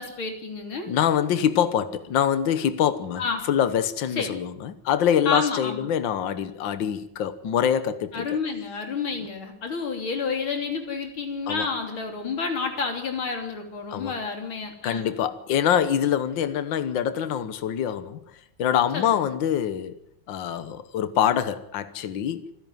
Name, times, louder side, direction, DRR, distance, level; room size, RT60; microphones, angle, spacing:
voice 1, 0.0-0.9 3.2-3.5 4.1-4.3 5.3-5.9 8.1-15.1 18.9-19.2, left 4 dB, 85° left, 4.0 m, -30 dB
voice 2, 0.9-3.2 3.5-8.3 11.5-11.7 13.9-14.2 14.8-18.2 18.6-20.0 20.3-22.5, left 9 dB, 70° left, 1.8 m, -24 dB
26.5 x 10.5 x 9.2 m
omnidirectional pair, 2.2 m